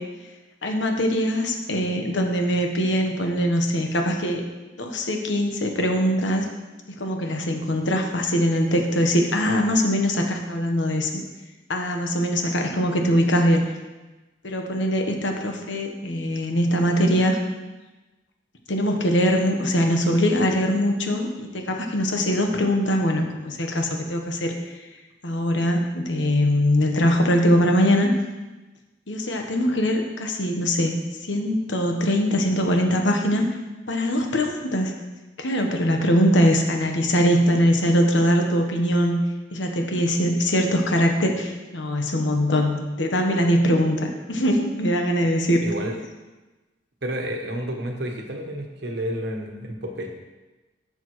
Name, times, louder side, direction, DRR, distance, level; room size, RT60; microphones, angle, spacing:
voice 1, 0.6-4.4 4.8-6.5 7.0-11.2 11.7-13.7 14.4-17.4 18.7-24.5 25.2-28.1 29.1-30.9 31.3-33.4 33.9-34.9 35.4-39.2 39.5-45.6, equal, 75° left, 3 dB, 1.2 m, -22 dB
voice 2, 45.6-46.0 47.0-50.1, equal, 65° right, 2 dB, 1.2 m, -30 dB
11.0 x 7.0 x 3.1 m, 1.1 s
head